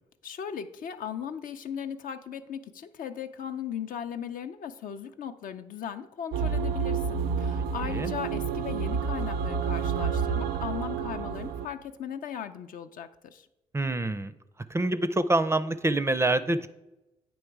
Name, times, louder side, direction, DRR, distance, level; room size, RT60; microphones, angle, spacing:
voice 1, 0.2-13.5, left 8 dB, 65° left, 8 dB, 0.5 m, -37 dB
sound 1, 6.3-11.7, right 6 dB, 75° right, 0.4 m, -29 dB
voice 2, 13.7-14.3 14.7-16.7, right 2 dB, 20° right, 13 dB, 0.4 m, -26 dB
8.7 x 3.1 x 4.6 m, 0.95 s
supercardioid pair, 55°, 15 cm